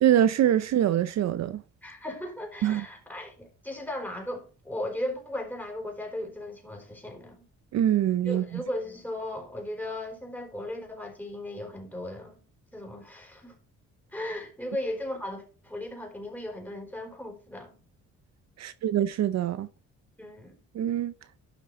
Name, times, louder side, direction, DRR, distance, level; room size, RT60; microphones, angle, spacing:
voice 1, 0.0-1.6 2.6-2.8 7.7-8.4 18.6-19.7 20.7-21.1, right 11 dB, 60° right, 0.6 m, -24 dB
voice 2, 1.8-7.4 8.2-12.4 12.7-13.5 14.1-17.8 20.2-20.6, left 1 dB, 5° left, 4.3 m, -36 dB
12.0 x 6.0 x 4.1 m
cardioid pair, 90°, 30 cm